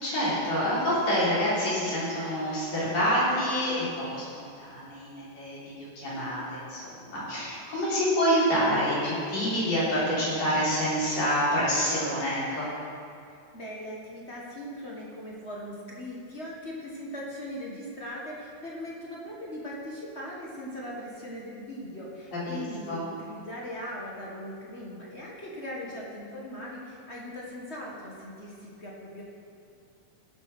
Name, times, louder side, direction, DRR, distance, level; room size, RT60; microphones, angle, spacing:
voice 1, 0.0-12.7 22.5-23.0, equal, 55° left, -8 dB, 5.0 m, -27 dB
voice 2, 13.5-29.2, equal, 35° left, -4 dB, 1.0 m, -39 dB
15.0 x 7.4 x 6.2 m, 2.4 s
omnidirectional pair, 3.7 m